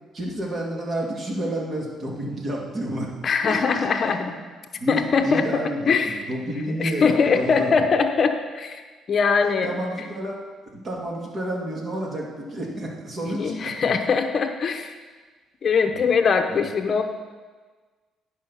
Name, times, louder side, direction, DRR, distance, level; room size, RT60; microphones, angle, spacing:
voice 1, 0.1-3.1 3.5-4.3 4.8-7.8 9.6-10.4 10.7-13.5 16.5-16.7, right 1 dB, 40° right, -2 dB, 2.3 m, -30 dB
voice 2, 3.2-4.3 4.9-6.2 6.7-8.8 9.1-9.7 13.3-14.9 15.6-17.0, left 5 dB, 45° left, 6 dB, 0.7 m, -22 dB
10.5 x 5.6 x 5.6 m, 1.4 s
cardioid pair, 95°, 0 cm